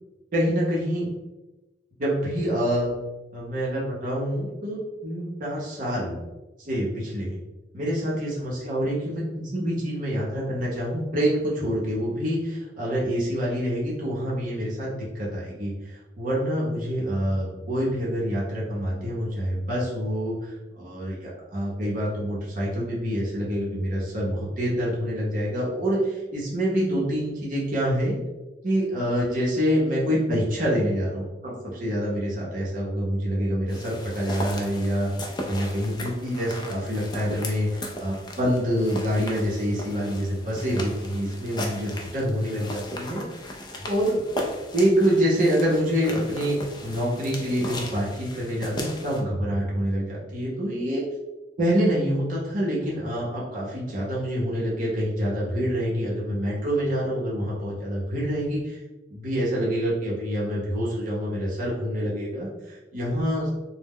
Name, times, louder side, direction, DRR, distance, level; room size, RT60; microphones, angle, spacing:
voice 1, 0.3-1.1 2.0-2.9 3.3-6.2 6.7-7.4 7.7-28.2 28.6-35.1 35.5-43.2 43.9-44.2 44.7-46.6 46.8-51.0 51.6-58.8 59.1-63.5, equal, 50° right, -5 dB, 0.6 m, -26 dB
sound 1, 33.7-49.2, left 1 dB, 25° left, 0.3 m, -37 dB
2.0 x 2.0 x 3.5 m, 1.1 s
head